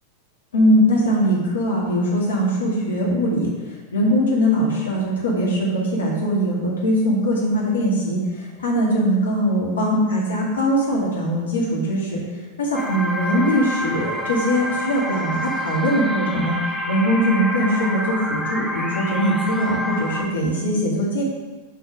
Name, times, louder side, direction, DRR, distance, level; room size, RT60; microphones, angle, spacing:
voice 1, 0.5-3.5 3.9-12.2 12.6-16.5 16.9-21.2, equal, 65° left, -3 dB, 1.6 m, -21 dB
sound 1, 12.8-20.3, equal, 5° left, 0.7 m, -28 dB
5.4 x 4.3 x 5.1 m, 1.3 s
figure-of-eight pair, 90°, 0 cm